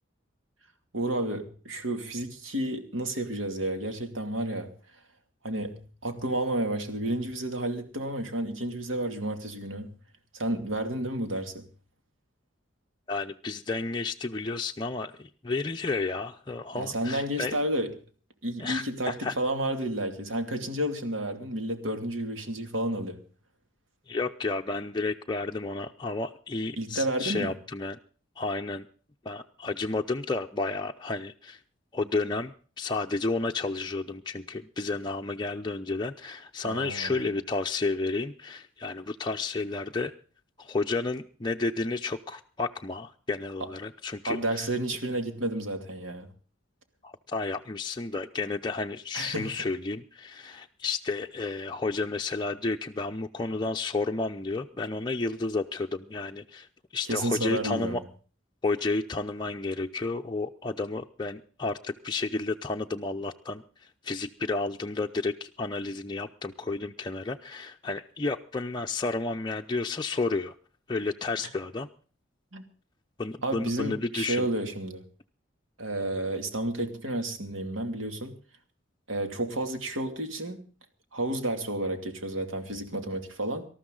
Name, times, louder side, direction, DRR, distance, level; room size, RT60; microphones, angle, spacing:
voice 1, 0.9-4.7 5.4-9.9 10.3-11.7 16.7-17.9 18.4-23.2 26.8-27.5 36.6-37.3 44.3-46.3 49.1-49.7 57.0-58.0 72.5-72.6 73.4-75.1 75.8-78.4 79.1-80.7 81.1-83.7, right 1 dB, 90° right, 6 dB, 2.6 m, -31 dB
voice 2, 13.1-17.6 18.6-19.4 24.1-28.0 28.4-28.9 29.2-31.6 31.9-40.1 40.6-44.7 47.0-56.7 56.9-58.0 58.6-70.5 70.9-71.9 73.2-74.5, left 3 dB, 25° left, 3 dB, 0.6 m, -31 dB
19.0 x 13.5 x 3.9 m, 0.41 s
head